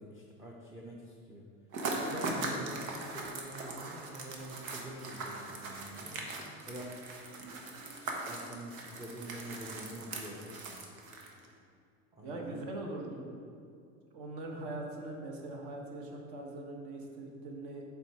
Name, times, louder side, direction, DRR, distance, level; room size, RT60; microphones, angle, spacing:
voice 1, 0.0-1.5 1.9-6.3 6.6-7.0 7.4-7.6 8.0-10.8 12.1-12.6, equal, 10° right, -2 dB, 0.5 m, -46 dB
sound 1, 1.7-11.5, right 2 dB, 90° right, 1.1 m, -40 dB
voice 2, 12.2-13.3 14.1-17.8, right 2 dB, 55° right, 0 dB, 1.3 m, -41 dB
7.7 x 3.6 x 4.3 m, 2.4 s
supercardioid pair, 115°, 41 cm